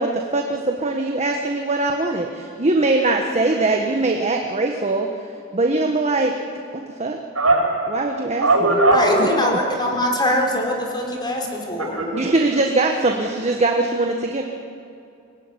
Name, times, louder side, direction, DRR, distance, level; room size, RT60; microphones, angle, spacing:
voice 1, 0.0-5.1 5.5-6.3 6.7-7.2 7.9-8.8 9.2-9.3 12.1-14.4, right 2 dB, 30° right, 2 dB, 1.4 m, -21 dB
voice 2, 7.3-7.8 8.4-9.2 11.8-12.3, right 2 dB, 85° right, 1 dB, 5.7 m, -18 dB
voice 3, 8.8-12.1, left 1 dB, 20° left, 1 dB, 4.4 m, -22 dB
23.5 x 18.5 x 9.9 m, 2.5 s
head